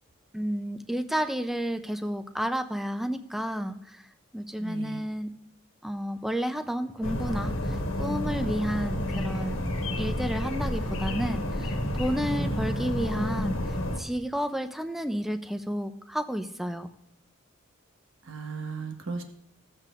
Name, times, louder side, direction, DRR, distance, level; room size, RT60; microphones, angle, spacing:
voice 1, 0.3-4.1 4.3-5.3 5.8-9.6 10.0-13.6 14.0-16.9, equal, ahead, 8 dB, 0.5 m, -31 dB
voice 2, 4.6-5.0 12.4-12.6 18.3-19.2, right 4 dB, 75° right, 4 dB, 1.2 m, -36 dB
sound 1, 7.0-14.0, left 1 dB, 85° left, 1.3 m, -30 dB
16.5 x 7.4 x 2.5 m, 0.69 s
head